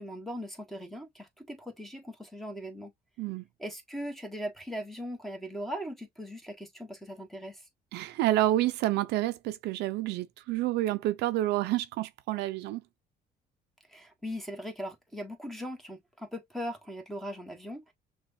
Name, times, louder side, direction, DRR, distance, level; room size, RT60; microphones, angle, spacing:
voice 1, 0.0-2.9 3.6-7.6 13.9-17.9, equal, ahead, 1.3 m, -39 dB
voice 2, 7.9-12.8, right 15 dB, 85° right, 0.5 m, -29 dB
6.0 x 2.4 x 2.6 m
cardioid pair, 110°, 17 cm